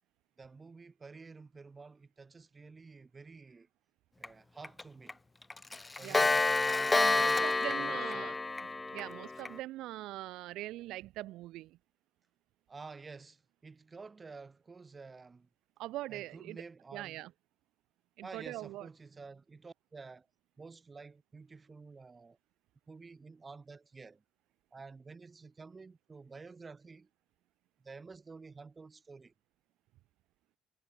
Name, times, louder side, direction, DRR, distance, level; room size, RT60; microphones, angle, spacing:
voice 1, 0.4-3.7 4.2-5.2 6.0-8.4 12.7-15.5 16.1-17.2 18.2-20.3 20.6-22.4 22.9-24.2 24.7-27.1 27.8-29.3, right 4 dB, 25° right, 6.9 m, -51 dB
Clock, 4.2-4.3 4.6-4.8 5.1-5.2 5.5-9.5, left 3 dB, 20° left, 1.3 m, -29 dB
voice 2, 6.0-6.4 6.9-8.4 8.9-11.8 15.8-16.6 16.9-17.3 18.2-18.9, right 16 dB, 80° right, 3.0 m, -42 dB
cardioid pair, 95°, 0 cm